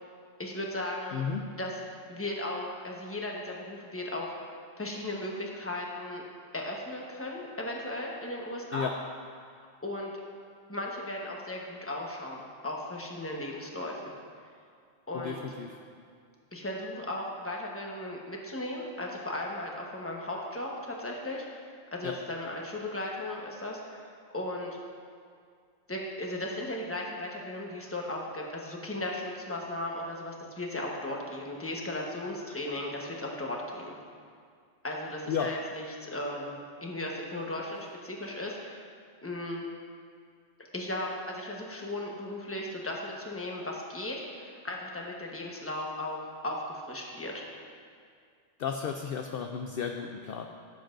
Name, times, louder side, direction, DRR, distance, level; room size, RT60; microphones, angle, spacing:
voice 1, 0.4-1.2 1.5-1.8 2.1-4.3 4.8-6.2 6.5-8.9 9.6-10.1 10.7-14.1 15.1-15.4 16.5-21.6 21.9-24.8 25.9-34.0 34.8-36.6 36.8-38.8 39.2-39.6 40.7-46.2 46.4-47.5, left 1 dB, 10° left, -2 dB, 1.0 m, -36 dB
voice 2, 1.1-1.5 8.7-8.9 15.1-15.8 22.0-22.2 35.3-35.5 48.6-50.5, left 7 dB, 60° left, 4 dB, 0.6 m, -33 dB
16.0 x 7.8 x 2.6 m, 2.1 s
omnidirectional pair, 1.3 m